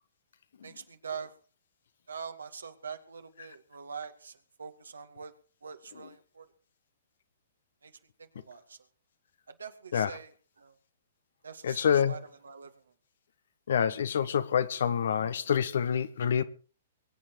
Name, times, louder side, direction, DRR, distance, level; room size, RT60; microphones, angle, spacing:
voice 1, 0.6-1.3 2.1-5.3 5.6-6.5 7.8-7.9 8.2-8.8 9.5-10.7 11.4-12.7, right 6 dB, 80° right, 2.1 m, -44 dB
voice 2, 11.6-12.1 13.7-16.4, left 8 dB, 65° left, 1.3 m, -27 dB
23.0 x 9.1 x 4.7 m
figure-of-eight pair, 115°, 0 cm